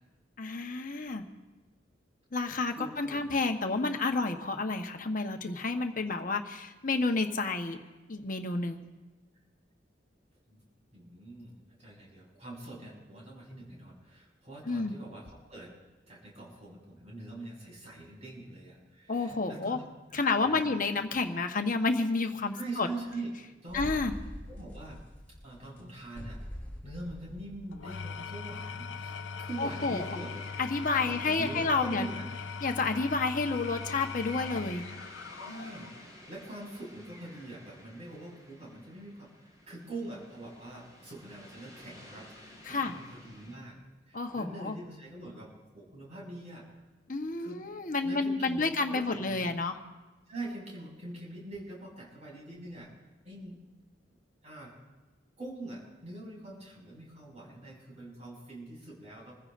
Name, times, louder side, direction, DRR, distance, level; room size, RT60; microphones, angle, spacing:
voice 1, 0.4-1.2 2.3-7.8 8.1-8.8 14.7-15.0 19.1-19.8 20.1-22.9 23.7-24.1 29.6-30.0 30.6-32.1 32.6-34.8 42.7-42.9 44.1-44.7 47.1-49.7, left 3 dB, 45° left, 5 dB, 1.1 m, -30 dB
voice 2, 2.7-3.2 10.5-10.6 10.9-15.7 16.1-19.8 20.1-20.7 22.5-25.0 25.4-26.4 26.8-30.4 31.0-32.2 35.3-35.9 36.3-43.8 44.1-46.7 47.4-47.6 48.0-49.5 50.3-52.9 53.2-53.6 54.4-54.7 55.4-59.3, right 2 dB, 40° right, -3 dB, 5.9 m, -43 dB
sound 1, 23.7-28.5, equal, 10° left, 3.2 m, -43 dB
Engine / Tools, 27.7-36.0, left 5 dB, 80° left, 0.6 m, -40 dB
sound 2, 29.5-43.5, left 1 dB, 20° right, 5.4 m, -52 dB
26.5 x 15.5 x 2.6 m, 1.2 s
head